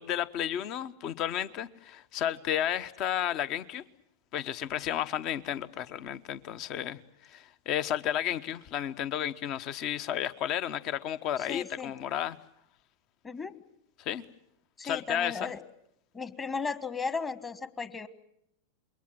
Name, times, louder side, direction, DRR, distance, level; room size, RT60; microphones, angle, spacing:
voice 1, 0.0-3.8 4.3-12.4 14.0-14.2 14.8-15.5, left 10 dB, 40° left, 16 dB, 1.0 m, -32 dB
voice 2, 11.4-11.9 13.2-13.6 14.8-15.6 16.1-18.1, left 4 dB, 20° left, 14 dB, 1.5 m, -35 dB
27.5 x 22.5 x 7.6 m, 0.77 s
figure-of-eight pair, 90°, 0 cm